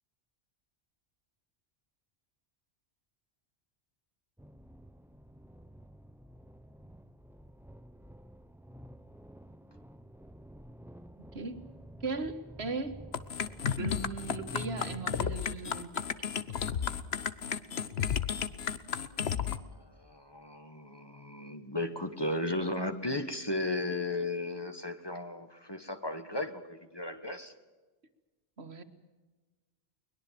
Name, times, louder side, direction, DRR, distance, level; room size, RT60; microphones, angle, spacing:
sound 1, 4.4-15.4, equal, 5° right, 0.6 m, -50 dB
voice 1, 12.0-13.0 13.8-16.0 28.6-28.8, right 3 dB, 80° right, 2.0 m, -37 dB
sound 2, 13.1-19.6, left 7 dB, 75° left, 1.2 m, -33 dB
voice 2, 19.4-27.5, left 2 dB, 25° left, 1.5 m, -35 dB
22.5 x 21.0 x 7.6 m
omnidirectional pair, 1.1 m